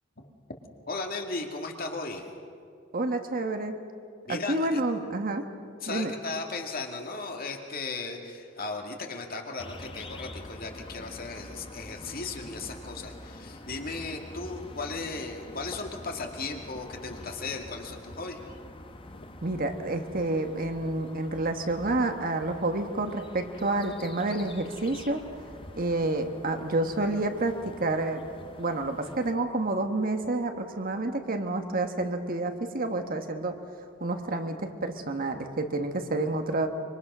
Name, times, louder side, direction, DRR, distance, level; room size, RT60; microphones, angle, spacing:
voice 1, 0.9-2.3 4.3-4.8 5.8-18.4, left 3 dB, 50° left, 3 dB, 2.2 m, -36 dB
voice 2, 2.9-3.7 4.3-5.4 5.9-6.1 19.4-25.2 25.8-28.2 28.6-33.6 34.0-36.7, right 2 dB, 50° right, 6 dB, 1.5 m, -29 dB
sound 1, 9.6-29.3, left 1 dB, 30° left, 1.3 m, -46 dB
25.0 x 24.0 x 6.2 m, 2.4 s
head